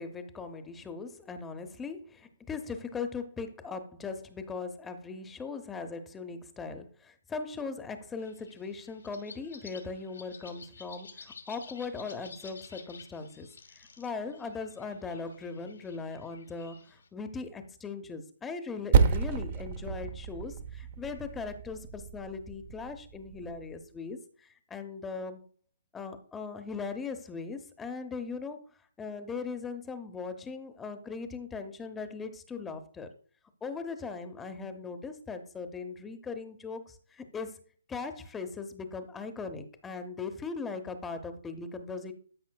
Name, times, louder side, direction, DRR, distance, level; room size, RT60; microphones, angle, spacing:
voice 1, 0.0-25.5 25.9-28.7 29.0-33.1 33.6-37.6 37.9-42.1, left 4 dB, 10° left, 8 dB, 0.8 m, -39 dB
sound 1, 8.2-17.1, left 5 dB, 80° left, 2.7 m, -52 dB
Percussion, 18.9-23.8, right 6 dB, 45° right, 0.8 m, -30 dB
13.0 x 5.6 x 2.3 m, 0.44 s
hypercardioid pair, 150°, 0 cm